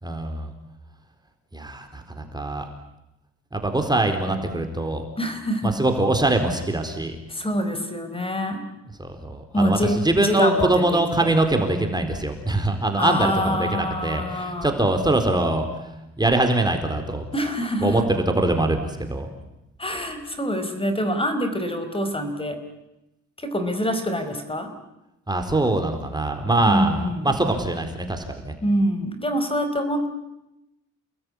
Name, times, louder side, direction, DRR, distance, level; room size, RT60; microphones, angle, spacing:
voice 1, 0.0-0.5 1.5-2.7 3.5-5.1 5.6-7.2 9.0-17.2 17.8-19.3 25.3-28.6, right 2 dB, 15° right, 5 dB, 4.2 m, -23 dB
voice 2, 5.2-5.8 7.3-8.6 9.5-11.3 13.0-14.7 17.3-18.1 19.8-22.6 23.4-24.7 26.7-27.3 28.6-30.1, equal, 20° left, 8 dB, 4.7 m, -25 dB
29.5 x 20.0 x 9.9 m, 0.91 s
cardioid pair, 90°, 30 cm